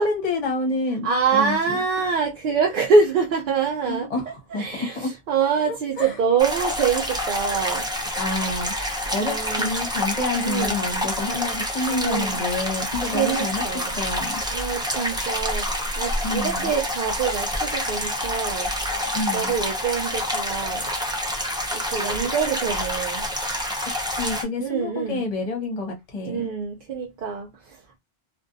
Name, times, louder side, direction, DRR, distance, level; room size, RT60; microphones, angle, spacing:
voice 1, 0.0-1.8 3.9-5.1 5.7-6.2 8.2-13.6 14.0-14.4 16.2-16.7 19.1-19.5 24.0-26.5, left 2 dB, 40° left, 0.8 m, -28 dB
voice 2, 1.0-4.1 4.5-7.9 9.2-9.7 10.4-10.9 11.9-12.4 13.1-14.0 14.5-18.7 19.3-20.9 21.7-23.3 24.6-25.3 26.3-28.0, right 5 dB, 60° right, 0.7 m, -25 dB
sound 1, 6.4-24.4, left 1 dB, 5° right, 0.4 m, -27 dB
2.5 x 2.2 x 2.4 m
omnidirectional pair, 1.0 m